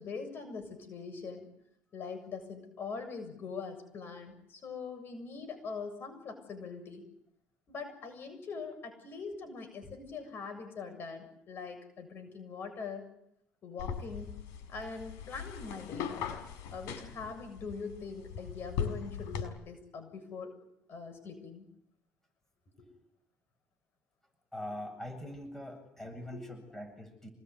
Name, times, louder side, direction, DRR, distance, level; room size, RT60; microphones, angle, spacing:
voice 1, 0.0-1.5 1.9-7.0 7.7-13.1 13.6-14.3 14.7-16.2 16.7-20.5 20.9-21.6 22.8-22.9 26.0-26.6, left 5 dB, 45° left, 7 dB, 7.2 m, -42 dB
sound 1, 13.8-19.5, left 7 dB, 75° left, 5.2 m, -39 dB
voice 2, 24.5-27.3, left 1 dB, 5° left, 6 dB, 7.9 m, -43 dB
27.5 x 20.0 x 9.6 m, 0.76 s
cardioid pair, 110°, 5 cm